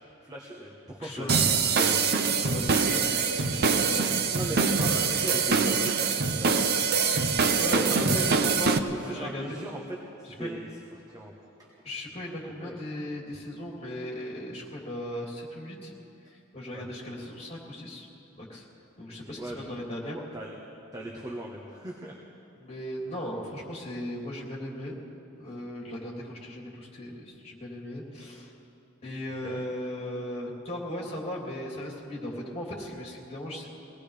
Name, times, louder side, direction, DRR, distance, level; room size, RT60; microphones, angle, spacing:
voice 1, 0.2-1.4 1.7-2.0 4.3-6.7 7.9-8.4 8.9-10.7 11.1-11.3 12.6-12.7 16.7-16.8 19.1-19.7 20.3-20.5 20.9-22.2 29.4-29.6, right 1 dB, 20° right, -2 dB, 1.3 m, -38 dB
voice 2, 1.0-4.2 7.4-8.8 9.0-9.6 10.4-10.5 11.8-15.9 16.5-18.1 18.3-18.6 19.0-20.2 22.6-25.0 25.4-28.5 29.0-33.7, left 1 dB, 30° left, -4 dB, 3.3 m, -37 dB
sound 1, 1.3-8.8, right 5 dB, 50° right, 0.7 m, -24 dB
23.0 x 18.0 x 3.5 m, 2.7 s
head